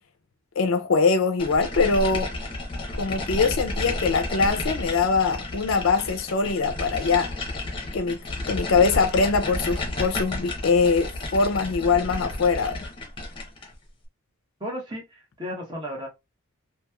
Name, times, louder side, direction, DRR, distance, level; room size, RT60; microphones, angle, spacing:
voice 1, 0.6-2.3 3.0-7.3 7.9-8.2 8.5-12.8, left 4 dB, 65° left, 0.4 m, -22 dB
sound 1, 1.4-13.7, left 2 dB, 25° left, 0.8 m, -32 dB
voice 2, 14.6-16.1, equal, 20° right, 0.9 m, -34 dB
2.9 x 2.7 x 2.2 m
head